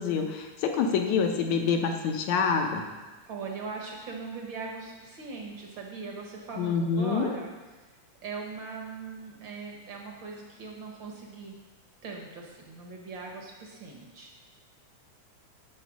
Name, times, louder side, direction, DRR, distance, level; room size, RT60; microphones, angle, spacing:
voice 1, 0.0-2.8 6.6-7.3, left 5 dB, 70° left, 4 dB, 2.1 m, -26 dB
voice 2, 3.3-7.8 8.2-11.6 12.0-14.4, right 4 dB, 55° right, 0 dB, 1.4 m, -40 dB
13.5 x 4.4 x 6.2 m, 1.3 s
omnidirectional pair, 3.6 m